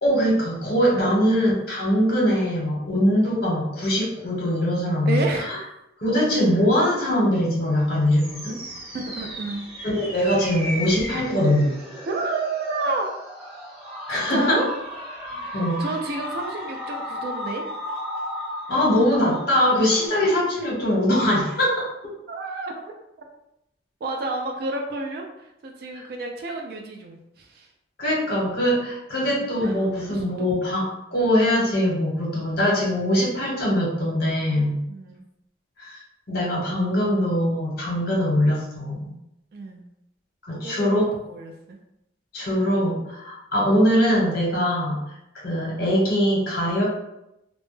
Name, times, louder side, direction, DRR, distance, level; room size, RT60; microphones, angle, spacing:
voice 1, 0.0-5.6 6.0-8.6 9.8-11.7 14.1-14.6 15.3-15.9 18.7-22.1 25.9-26.1 28.0-34.8 35.8-36.0 36.3-39.1 40.4-41.0 42.3-45.0 45.3-46.8, equal, 55° left, -3 dB, 0.9 m, -22 dB
voice 2, 5.1-5.5 6.1-6.4 8.9-9.7 12.1-13.1 14.1-14.7 15.4-17.7 22.3-22.7 23.2-23.3 24.0-27.7 29.3-30.8 34.9-35.3 39.5-39.8 40.5-41.8 42.6-42.7, right 3 dB, 55° right, 2 dB, 0.3 m, -31 dB
sound 1, 7.7-20.1, left 1 dB, 30° right, 0.8 m, -35 dB
2.1 x 2.1 x 3.0 m, 0.86 s
head